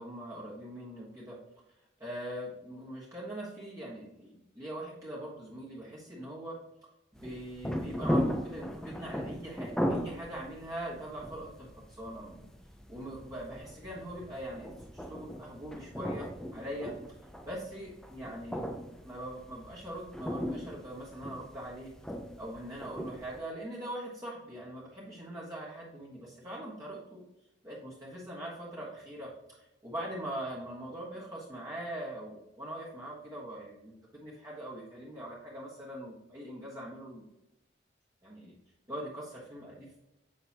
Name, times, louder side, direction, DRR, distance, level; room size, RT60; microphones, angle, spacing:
voice 1, 0.0-1.4 2.0-6.6 7.1-12.5 12.9-16.9 17.4-18.6 19.0-21.9 22.4-27.2 27.6-29.3 29.6-37.3 38.2-38.5 38.9-40.0, right 1 dB, 20° right, -6 dB, 1.4 m, -42 dB
sound 1, 7.2-23.4, equal, 5° left, 0.5 m, -37 dB
7.8 x 5.8 x 2.9 m, 0.89 s
head